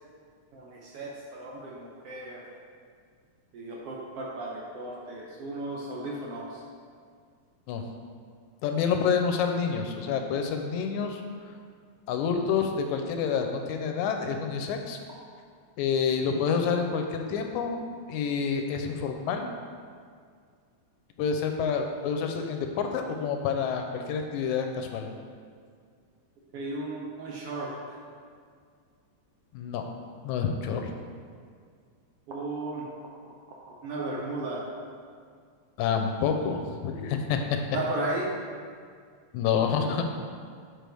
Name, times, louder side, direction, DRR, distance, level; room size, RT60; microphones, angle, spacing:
voice 1, 0.5-2.4 3.5-6.6 26.5-27.7 32.3-32.9 33.2-33.3 33.8-34.6 37.7-38.3, right 2 dB, 70° right, -4 dB, 1.5 m, -35 dB
voice 2, 8.6-11.2 12.1-15.0 15.8-17.8 18.1-19.5 21.2-25.1 29.5-29.8 30.2-30.9 35.8-37.4 39.3-40.0, left 6 dB, 90° left, 4 dB, 2.0 m, -28 dB
7.6 x 4.9 x 3.4 m, 2.1 s
omnidirectional pair, 3.3 m